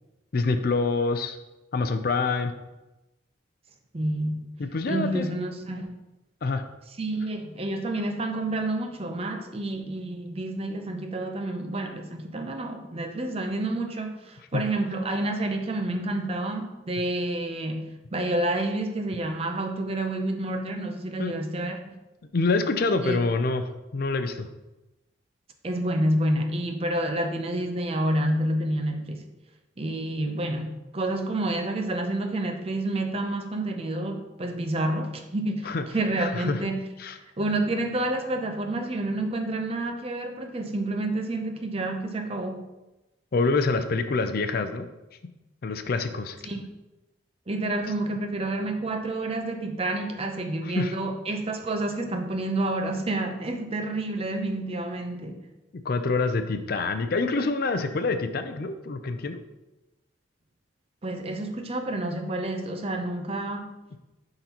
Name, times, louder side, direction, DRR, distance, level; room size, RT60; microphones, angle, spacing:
voice 1, 0.3-1.4 1.7-2.5 4.6-5.2 6.4-6.6 14.5-14.6 21.2-21.3 22.3-24.5 35.6-35.8 36.2-36.6 37.0-37.2 43.3-44.9 45.6-46.4 50.6-50.9 55.8-59.4, left 3 dB, 50° left, 8 dB, 0.4 m, -26 dB
voice 2, 3.9-4.5 4.9-6.0 7.0-22.0 23.0-23.2 25.6-29.3 29.8-36.9 37.4-42.7 46.4-46.6 47.5-55.4 61.0-63.7, right 1 dB, 30° right, 5 dB, 0.6 m, -29 dB
11.0 x 3.9 x 2.9 m, 1.0 s
head